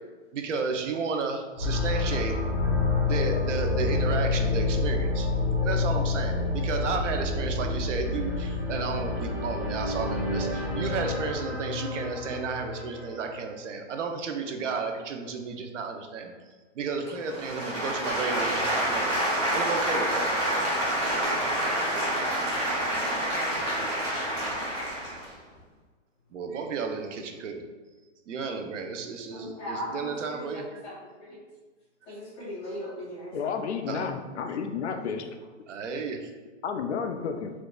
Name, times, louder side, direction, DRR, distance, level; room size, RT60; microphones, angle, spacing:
voice 1, 0.3-2.3 3.0-16.3 16.7-19.1 19.5-20.3 26.3-27.6 28.3-30.8 33.9-34.1 35.7-36.3, right 4 dB, 90° right, 4 dB, 0.7 m, -32 dB
sound 1, 1.5-13.5, left 3 dB, 15° right, 1.2 m, -28 dB
voice 2, 17.1-18.0 21.3-21.4 25.2-25.3 29.3-31.4 32.0-33.5, equal, 15° left, -12 dB, 1.3 m, -39 dB
sound 2, 17.2-25.3, right 1 dB, 35° right, 1.3 m, -28 dB
voice 3, 33.3-35.3 36.6-37.5, left 6 dB, 70° left, 6 dB, 0.5 m, -31 dB
4.5 x 2.4 x 2.2 m, 1.3 s
hypercardioid pair, 175°, 36 cm